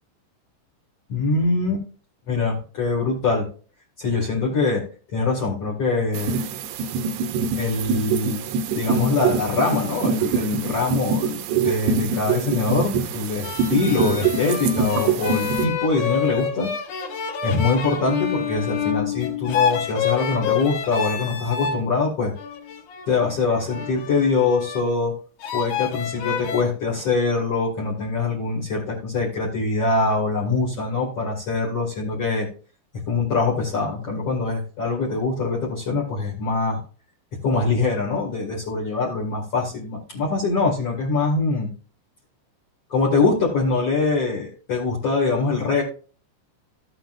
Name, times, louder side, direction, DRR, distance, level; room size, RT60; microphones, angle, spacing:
voice 1, 1.1-1.9 2.3-3.5 4.0-4.8 5.1-6.3 7.6-8.4 8.7-11.4 11.6-16.7 17.4-22.3 23.1-25.1 25.5-32.5 33.1-36.8 37.4-41.7 42.9-45.8, left 3 dB, 45° left, -2 dB, 2.3 m, -23 dB
sound 1, 6.1-15.6, right 5 dB, 75° right, 2.8 m, -24 dB
sound 2, 13.4-21.8 22.4-24.9 25.4-26.6, left 7 dB, 80° left, 1.8 m, -28 dB
14.5 x 7.8 x 2.5 m, 0.39 s
omnidirectional pair, 5.2 m